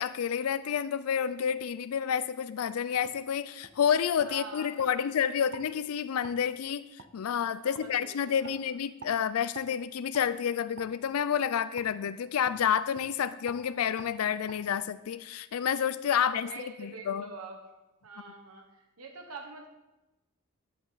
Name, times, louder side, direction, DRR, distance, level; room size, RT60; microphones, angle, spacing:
voice 1, 0.0-6.8 7.1-17.3, left 8 dB, 85° left, 14 dB, 0.4 m, -29 dB
sound 1, 3.0-3.2 3.6-3.8 4.2-4.9 5.5-5.7 6.2-6.4 7.0-7.1 7.7-7.9 8.4-8.6 9.0-9.2 9.5-9.7 10.1-10.3 10.7-10.9 11.8-11.9 12.4-12.6 12.9-13.1 13.5-13.6 14.0-14.1 14.5-14.6, right 4 dB, 60° right, 0.8 m, -47 dB
voice 2, 4.2-5.0 5.3-5.5 7.6-8.6 16.1-17.6 18.0-19.7, right 4 dB, 90° right, 3 dB, 1.3 m, -45 dB
11.5 x 8.5 x 4.0 m, 0.99 s
head